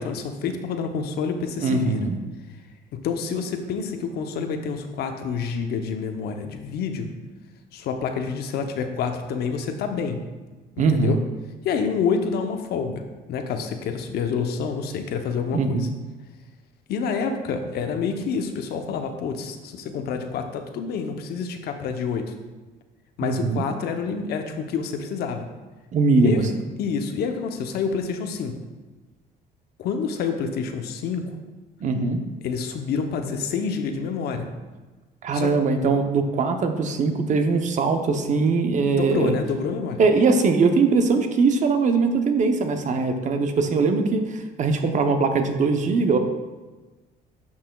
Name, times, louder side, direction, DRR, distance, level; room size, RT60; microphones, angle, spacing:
voice 1, 0.0-2.0 2.9-7.1 7.7-10.2 10.8-11.2 11.6-13.0 13.3-15.9 16.9-22.3 23.2-25.5 26.2-26.5 26.8-28.6 29.8-31.4 32.4-34.5 35.3-35.5 39.0-40.0, left 5 dB, 70° left, 6 dB, 0.8 m, -28 dB
voice 2, 1.6-2.2 10.8-11.2 15.5-15.9 23.2-23.6 25.9-26.4 31.8-32.2 35.2-39.4 40.0-46.2, right 4 dB, 45° right, 6 dB, 0.8 m, -21 dB
10.5 x 5.7 x 2.3 m, 1.2 s
cardioid pair, 110°, 17 cm